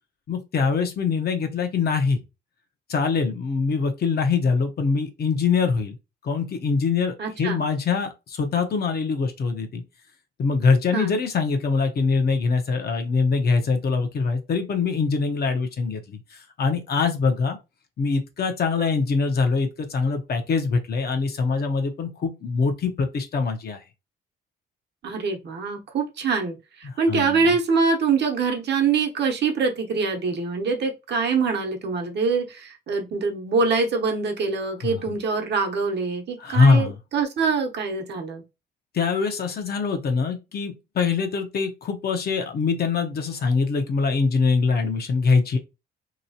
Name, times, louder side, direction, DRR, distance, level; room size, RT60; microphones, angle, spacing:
voice 1, 0.3-2.2 2.9-6.0 6.2-9.8 10.4-16.2 16.6-17.6 18.0-23.8 27.1-27.5 34.8-35.0 36.4-37.0 38.9-45.6, left 4 dB, 55° left, 0.8 m, -23 dB
voice 2, 7.2-7.6 10.9-11.1 25.0-38.4, right 4 dB, 60° right, 0.9 m, -24 dB
2.9 x 2.8 x 2.8 m
cardioid pair, 90°, 20 cm